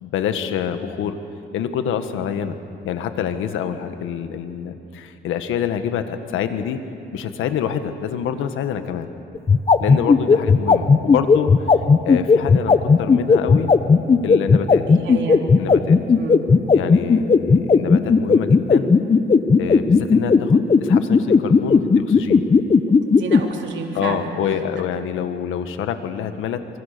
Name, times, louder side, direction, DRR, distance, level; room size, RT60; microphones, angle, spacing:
voice 1, 0.0-1.2 1.5-2.6 2.8-6.8 7.1-9.1 9.8-11.5 12.0-13.7 14.2-14.8 15.6-16.0 16.7-18.9 19.6-22.4 23.9-26.7, left 8 dB, 90° left, 9 dB, 1.6 m, -26 dB
sound 1, 9.3-23.4, left 5 dB, 30° left, 1.1 m, -13 dB
voice 2, 14.9-15.4 16.2-16.5 23.1-24.3, right 4 dB, 70° right, 1 dB, 3.5 m, -30 dB
26.0 x 24.0 x 6.9 m, 2.6 s
cardioid pair, 90°, 20 cm